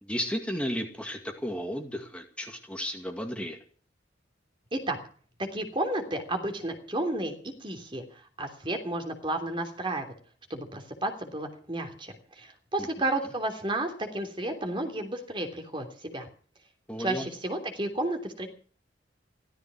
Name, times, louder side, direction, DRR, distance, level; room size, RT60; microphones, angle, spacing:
voice 1, 0.0-3.6 12.8-12.9 16.9-17.3, equal, 5° left, 3 dB, 2.2 m, -33 dB
voice 2, 5.4-8.0 8.4-10.1 10.5-16.3 17.0-18.5, right 1 dB, 30° right, 5 dB, 3.1 m, -32 dB
16.0 x 14.0 x 6.2 m, 0.44 s
head